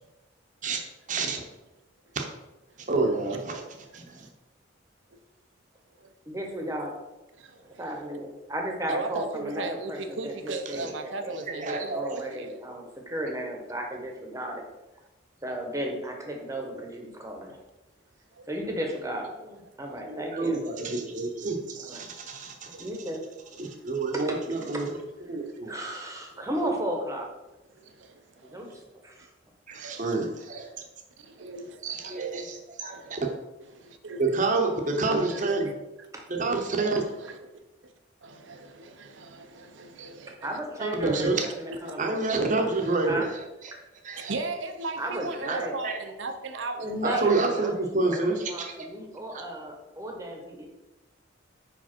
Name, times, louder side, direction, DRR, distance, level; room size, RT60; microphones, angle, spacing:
voice 1, 1.1-1.4 2.1-2.3 2.9-3.6 3.9-4.3 11.6-12.0 20.1-22.7 23.6-24.9 25.3-25.7 29.7-30.6 31.8-32.4 32.8-33.2 34.2-35.6 36.3-37.0 40.8-41.4 42.0-43.2 44.0-44.3 45.5-45.6 45.8-46.0 47.0-48.7, right 3 dB, 40° right, 3 dB, 0.9 m, -28 dB
voice 2, 3.7-4.0 5.1-5.2 6.6-6.7 7.4-7.8 8.9-12.6 18.3-18.5 21.4-21.5 22.7-22.8 23.6-23.8 25.4-25.6 26.4-26.5 27.7-28.8 29.2-29.3 29.7-30.2 31.2-32.3 32.9-33.2 33.7-34.3 35.0-35.7 37.0-37.4 37.8-37.9 38.2-40.6 41.7-41.9 42.7-43.1 44.3-47.4, right 2 dB, 75° right, 7 dB, 0.7 m, -37 dB
voice 3, 6.3-7.0 7.6-11.4 11.6-14.6 15.4-17.6 18.5-20.6 21.8-22.0 22.8-23.2 24.1-25.0 25.7-27.3 28.4-29.3 31.4-31.5 40.4-42.2 43.0-43.3 43.7-43.8 45.0-45.8 46.8-50.7, right 1 dB, 15° right, 1 dB, 1.0 m, -35 dB
5.2 x 4.9 x 4.4 m, 1.0 s
head